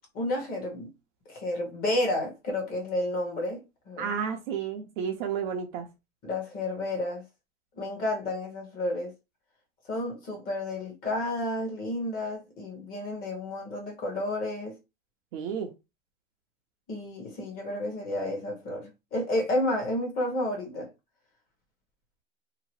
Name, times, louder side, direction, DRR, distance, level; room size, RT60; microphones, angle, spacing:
voice 1, 0.1-0.9 1.3-4.1 6.2-7.2 7.8-9.1 9.9-14.7 16.9-20.9, left 1 dB, 25° left, 0.9 m, -31 dB
voice 2, 4.0-5.9 15.3-15.7, right 7 dB, 40° right, 0.6 m, -31 dB
2.8 x 2.1 x 3.0 m
hypercardioid pair, 140°, 38 cm